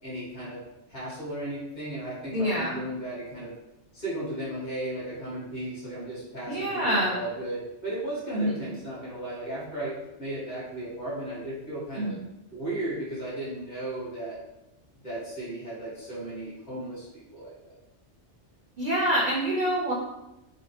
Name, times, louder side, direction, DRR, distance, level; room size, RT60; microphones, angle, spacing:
voice 1, 0.0-0.6 0.9-3.5 3.9-12.1 12.5-14.4 15.0-17.7, right 1 dB, 40° left, -9 dB, 1.3 m, -35 dB
voice 2, 2.3-2.8 6.5-7.2 8.3-8.5 12.0-12.1 18.8-19.9, equal, 55° right, -6 dB, 0.6 m, -26 dB
3.5 x 2.1 x 2.7 m, 0.93 s
omnidirectional pair, 1.2 m